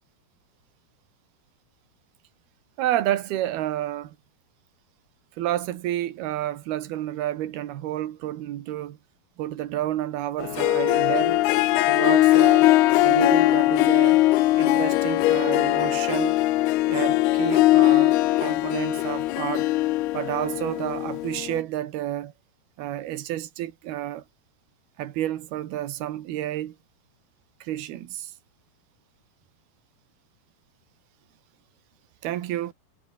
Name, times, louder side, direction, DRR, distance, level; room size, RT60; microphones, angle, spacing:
voice 1, 2.8-4.2 5.4-9.0 9.4-11.4 11.9-12.7 13.0-14.2 14.6-16.4 16.9-19.7 20.1-22.3 22.8-24.2 25.0-26.8 27.6-28.3 32.2-32.7, right 13 dB, 80° right, 3.5 m, -30 dB
Harp, 10.4-21.6, left 17 dB, 85° left, 2.9 m, -20 dB
omnidirectional pair, 4.4 m